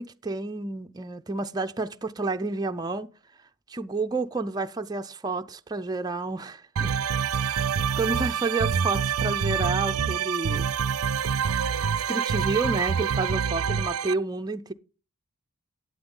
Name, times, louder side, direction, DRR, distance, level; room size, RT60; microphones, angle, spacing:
voice 1, 0.0-3.1 3.7-6.9 7.4-10.7 12.1-14.7, right 3 dB, 20° right, 0.5 m, -30 dB
sound 1, 6.8-14.1, right 7 dB, 85° right, 0.4 m, -26 dB
11.5 x 8.7 x 3.8 m
head